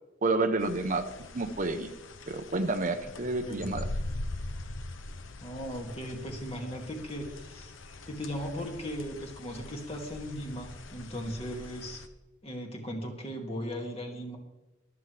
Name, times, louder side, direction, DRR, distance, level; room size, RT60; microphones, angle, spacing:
voice 1, 0.2-1.0 1.3-1.9 2.3-3.9, right 2 dB, 45° right, 8 dB, 0.9 m, -29 dB
sound 1, 0.6-12.1, left 2 dB, 85° left, 1.0 m, -42 dB
voice 2, 5.4-7.7 8.1-12.0 12.4-14.4, equal, 30° left, 1 dB, 2.4 m, -37 dB
24.0 x 8.2 x 3.4 m, 1.0 s
head